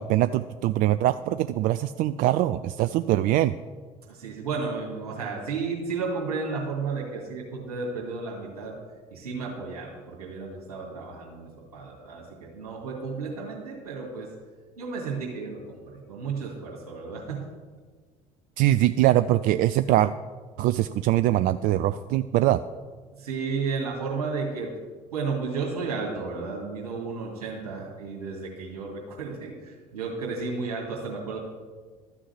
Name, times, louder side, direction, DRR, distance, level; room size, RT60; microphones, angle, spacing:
voice 1, 0.0-3.5 18.6-20.1 20.6-22.6, right 14 dB, 50° right, 12 dB, 0.4 m, -22 dB
voice 2, 4.1-8.8 9.1-14.3 14.8-17.4 23.1-24.7 25.1-31.4, right 4 dB, 75° right, -4 dB, 2.3 m, -33 dB
13.0 x 6.2 x 8.0 m, 1.5 s
figure-of-eight pair, 55°, 19 cm